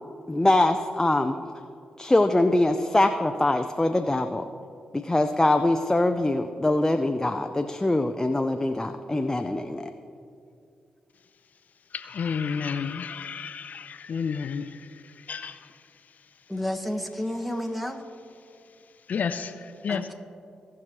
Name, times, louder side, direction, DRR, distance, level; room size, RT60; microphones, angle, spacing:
voice 1, 0.3-1.4 2.0-4.4 5.0-9.9, left 2 dB, 20° left, 0.5 m, -23 dB
voice 2, 11.9-15.6 19.1-20.0, left 6 dB, 65° left, 0.5 m, -31 dB
voice 3, 16.5-18.0 19.9-20.1, left 1 dB, ahead, 1.3 m, -31 dB
17.5 x 6.1 x 3.0 m
supercardioid pair, 45°, 3 cm